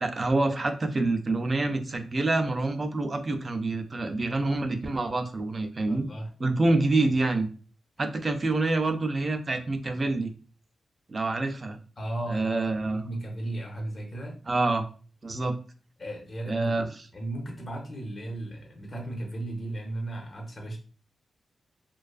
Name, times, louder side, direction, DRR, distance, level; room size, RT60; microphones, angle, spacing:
voice 1, 0.0-6.1 6.4-7.5 8.0-10.3 11.1-11.8 12.3-13.0 14.5-14.9 15.2-15.6 16.5-16.9, right 2 dB, 35° right, 6 dB, 0.3 m, -27 dB
voice 2, 5.9-6.3 6.6-6.8 12.0-14.4 16.0-20.8, right 1 dB, 30° left, 1 dB, 0.5 m, -35 dB
2.4 x 2.3 x 2.3 m, 0.39 s
wide cardioid pair, 125°, 0 cm